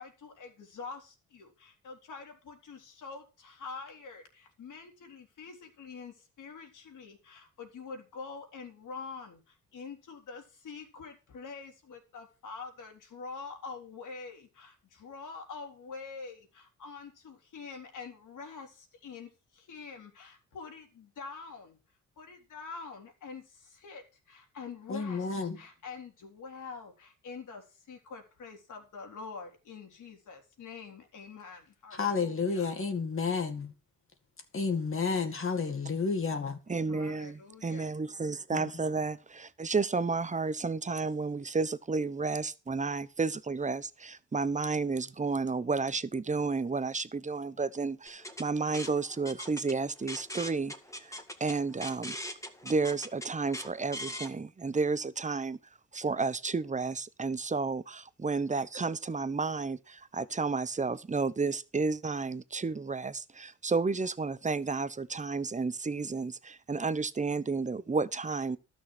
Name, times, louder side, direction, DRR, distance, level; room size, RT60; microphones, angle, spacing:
voice 1, 0.0-32.7 36.7-37.9, left 4 dB, 70° left, 3.7 m, -46 dB
voice 2, 24.9-25.6 31.9-33.7 34.5-36.6 38.5-38.7, left 5 dB, 40° left, 2.2 m, -31 dB
voice 3, 36.7-50.7 51.0-52.2 52.6-55.6 55.9-68.6, right 4 dB, 25° right, 0.9 m, -32 dB
sound 1, 48.1-54.3, left 1 dB, 10° left, 2.1 m, -41 dB
12.5 x 6.4 x 6.1 m
supercardioid pair, 65°, 32 cm